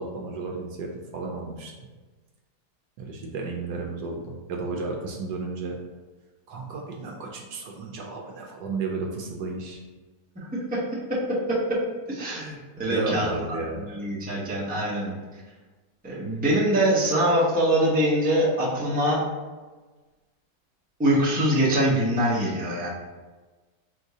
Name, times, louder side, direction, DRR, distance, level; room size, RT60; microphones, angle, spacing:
voice 1, 0.0-1.7 3.0-5.8 6.5-9.8 12.9-13.9, right 3 dB, 75° right, 0 dB, 1.1 m, -33 dB
voice 2, 10.5-10.8 11.1-11.8 12.1-13.3 13.7-15.1 16.0-19.2 21.0-22.9, right 1 dB, 5° right, -7 dB, 0.7 m, -24 dB
3.7 x 2.6 x 4.7 m, 1.3 s
omnidirectional pair, 1.9 m